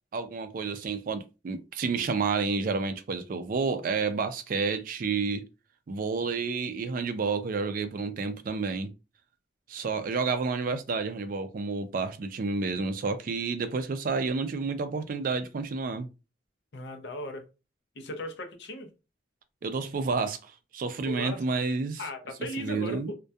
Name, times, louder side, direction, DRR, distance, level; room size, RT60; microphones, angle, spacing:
voice 1, 0.1-5.5 5.9-8.9 9.7-16.1 19.6-22.0 22.6-23.1, right 4 dB, 50° right, 0.3 m, -30 dB
voice 2, 16.7-17.4 18.0-18.9 21.0-21.4 22.0-23.1, left 1 dB, 70° left, 0.6 m, -37 dB
2.2 x 2.2 x 2.6 m
head